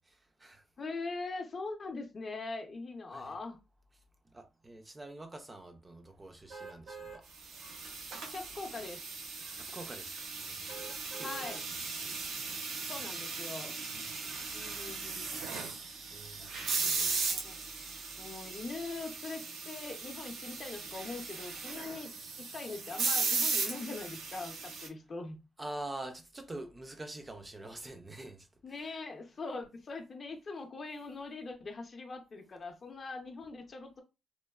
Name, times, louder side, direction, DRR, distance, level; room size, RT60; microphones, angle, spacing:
voice 1, 0.8-3.6 8.1-9.0 11.2-11.6 12.9-13.7 14.5-15.3 16.7-17.5 18.2-25.4 28.6-34.0, left 3 dB, 40° left, 0.5 m, -42 dB
voice 2, 4.3-7.2 9.6-11.4 12.0-12.8 13.9-14.2 16.1-17.1 25.6-28.5 28.8-28.9, right 1 dB, 20° right, 0.4 m, -46 dB
sound 1, 6.5-7.2 7.8-7.9 10.7-11.6 12.2-12.3, right 4 dB, 60° right, 0.9 m, -46 dB
sound 2, 7.4-24.9, right 4 dB, 85° right, 0.5 m, -37 dB
3.0 x 2.0 x 2.3 m
cardioid pair, 120°, 0 cm